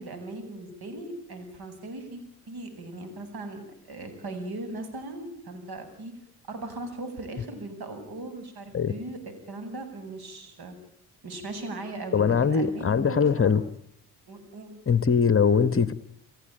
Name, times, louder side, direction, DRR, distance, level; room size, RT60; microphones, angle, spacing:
voice 1, 0.0-2.2 2.5-6.1 6.5-10.7 11.2-13.6 14.3-14.8, right 2 dB, 50° right, 9 dB, 7.8 m, -38 dB
voice 2, 12.1-13.6 14.9-15.9, left 6 dB, 30° left, 14 dB, 1.3 m, -22 dB
30.0 x 16.0 x 9.1 m, 0.77 s
hypercardioid pair, 60°, 46 cm